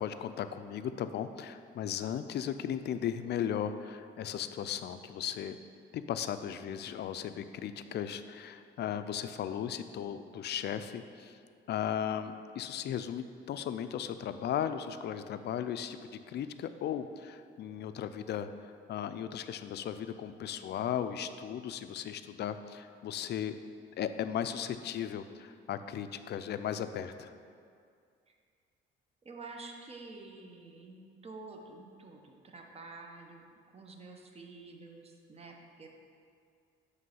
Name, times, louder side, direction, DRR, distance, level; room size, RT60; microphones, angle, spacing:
voice 1, 0.0-5.6 5.9-11.4 11.7-18.5 18.9-23.6 24.0-27.3, left 9 dB, 60° left, 10 dB, 0.4 m, -36 dB
voice 2, 29.2-33.5 33.7-35.9, right 3 dB, 30° right, 2 dB, 0.8 m, -49 dB
7.5 x 3.2 x 5.6 m, 2.3 s
cardioid pair, 90°, 20 cm